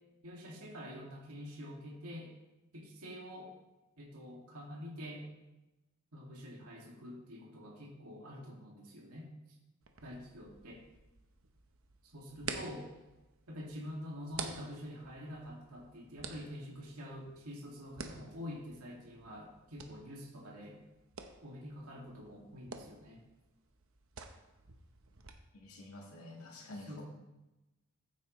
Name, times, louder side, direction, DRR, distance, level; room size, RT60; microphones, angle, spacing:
voice 1, 0.2-2.3 2.7-3.5 4.0-5.3 6.1-9.3 10.0-10.8 12.0-12.9 13.5-20.8 21.4-23.2 26.9-27.0, equal, 85° right, -3 dB, 2.2 m, -46 dB
sound 1, 9.8-25.3, right 5 dB, 65° right, 1.0 m, -50 dB
voice 2, 25.5-27.0, left 2 dB, 80° left, -3 dB, 1.8 m, -49 dB
14.5 x 8.4 x 3.2 m, 0.99 s
head